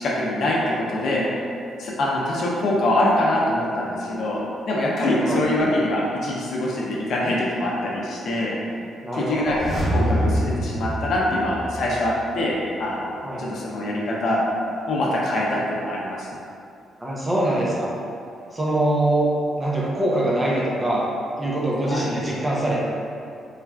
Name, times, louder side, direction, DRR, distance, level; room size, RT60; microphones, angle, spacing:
voice 1, 0.0-1.2 1.8-8.5 9.1-14.4 14.9-16.3 21.8-22.1, left 1 dB, 65° left, -4 dB, 0.5 m, -24 dB
voice 2, 5.0-5.4 9.0-9.6 13.2-13.4 17.0-17.9 18.5-19.3 19.6-21.1 21.4-22.8, right 1 dB, 20° right, -5 dB, 0.6 m, -23 dB
sound 1, 9.4-12.2 12.5-12.6, equal, 15° left, 1.1 m, -25 dB
3.1 x 2.3 x 2.3 m, 2.5 s
cardioid pair, 90°, 0 cm